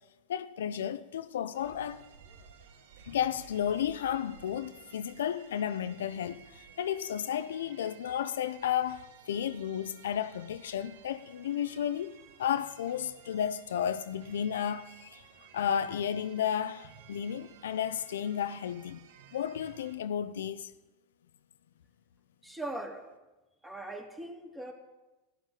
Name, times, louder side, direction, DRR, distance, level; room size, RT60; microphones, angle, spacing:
voice 1, 0.3-2.0 3.0-15.2 15.5-20.7, left 9 dB, 80° left, 0.7 m, -33 dB
sound 1, 1.5-20.0, right 7 dB, 70° right, 1.6 m, -55 dB
voice 2, 22.4-23.1 23.6-24.7, right 1 dB, 5° right, 3.0 m, -40 dB
15.5 x 7.5 x 9.9 m
hypercardioid pair, 100°, 0 cm